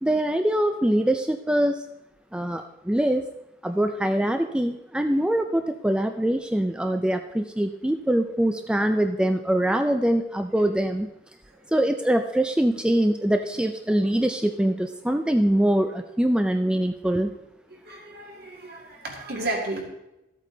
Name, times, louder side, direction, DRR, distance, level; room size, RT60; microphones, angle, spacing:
voice 1, 0.0-1.8 2.3-3.3 3.6-11.1 11.7-17.3, right 1 dB, 5° right, 7 dB, 0.4 m, -23 dB
voice 2, 17.8-19.8, right 2 dB, 55° right, 0 dB, 2.2 m, -32 dB
13.5 x 8.3 x 3.8 m, 0.92 s
head